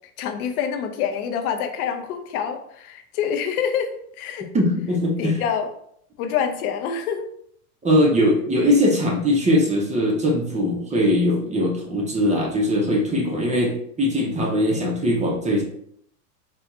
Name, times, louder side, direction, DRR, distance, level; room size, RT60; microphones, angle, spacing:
voice 1, 0.2-4.5 5.2-5.7 6.2-7.3, left 7 dB, 65° left, 6 dB, 0.7 m, -26 dB
voice 2, 4.5-5.4 7.8-15.6, equal, 15° right, -1 dB, 0.7 m, -21 dB
4.3 x 2.3 x 3.0 m, 0.68 s
hypercardioid pair, 110°, 47 cm